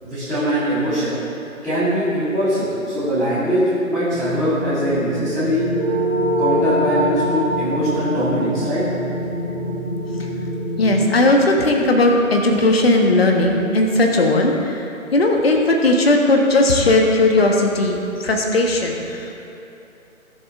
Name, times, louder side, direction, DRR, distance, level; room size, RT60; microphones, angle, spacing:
voice 1, 0.0-1.2 1.6-5.6 6.4-8.8, equal, ahead, -18 dB, 2.0 m, -21 dB
sound 1, 4.1-11.1, equal, 20° left, 1.7 m, -28 dB
sound 2, 5.7-10.5, right 1 dB, 55° right, 1.1 m, -24 dB
voice 2, 10.7-19.3, left 2 dB, 45° left, 1 dB, 1.5 m, -17 dB
16.5 x 7.6 x 3.7 m, 2.8 s
figure-of-eight pair, 145°, 42 cm